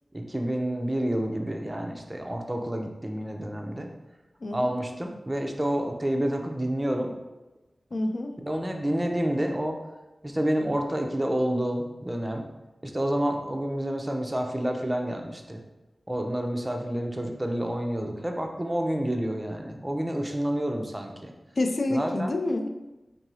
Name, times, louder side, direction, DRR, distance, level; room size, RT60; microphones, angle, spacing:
voice 1, 0.1-3.9 4.5-7.1 8.4-9.8 10.2-12.4 12.8-15.6 16.1-21.3 21.9-22.3, right 1 dB, 20° right, 3 dB, 0.6 m, -29 dB
voice 2, 4.4-4.7 7.9-8.3 21.6-22.7, left 2 dB, 65° left, 5 dB, 0.4 m, -27 dB
3.7 x 2.7 x 4.7 m, 1.0 s
cardioid pair, 50°, 0 cm